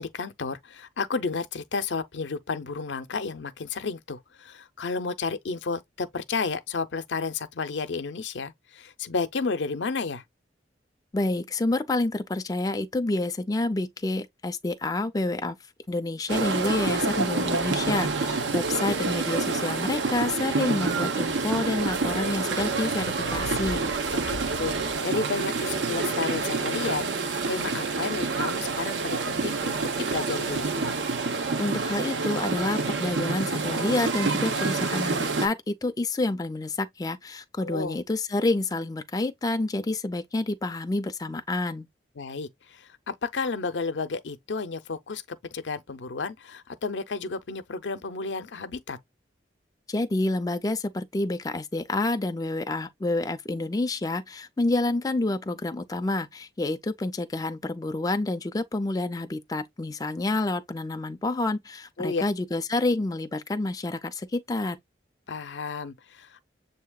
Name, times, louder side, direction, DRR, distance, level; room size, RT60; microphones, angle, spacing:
voice 1, 0.0-10.2 24.1-30.7 37.6-38.0 42.2-49.0 62.0-62.2 65.3-66.4, left 4 dB, 85° left, 0.6 m, -32 dB
voice 2, 11.1-15.6 15.9-23.9 31.6-41.9 49.9-64.8, left 2 dB, 20° left, 0.4 m, -28 dB
sound 1, 16.3-35.5, right 4 dB, 85° right, 0.7 m, -28 dB
sound 2, 25.1-31.0, right 6 dB, 50° right, 0.3 m, -39 dB
7.0 x 2.8 x 2.3 m
head